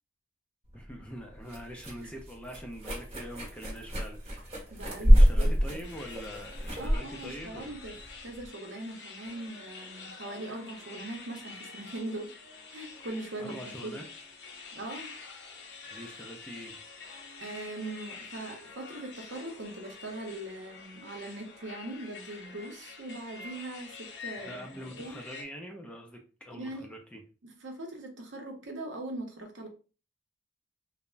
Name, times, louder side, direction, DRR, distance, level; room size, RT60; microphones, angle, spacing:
voice 1, 0.7-7.7 13.4-14.0 15.9-16.8 24.5-26.2 26.4-27.2, equal, 5° left, 0.3 m, -44 dB
sound 1, 0.7-8.5, equal, 30° right, 0.9 m, -26 dB
voice 2, 4.7-5.8 6.8-12.3 12.7-14.0 14.7-15.1 17.0-25.2 26.5-26.9 27.4-29.7, right 2 dB, 75° right, 0.7 m, -41 dB
sound 2, 5.8-25.4, left 4 dB, 60° left, 0.5 m, -47 dB
3.3 x 2.0 x 2.4 m
head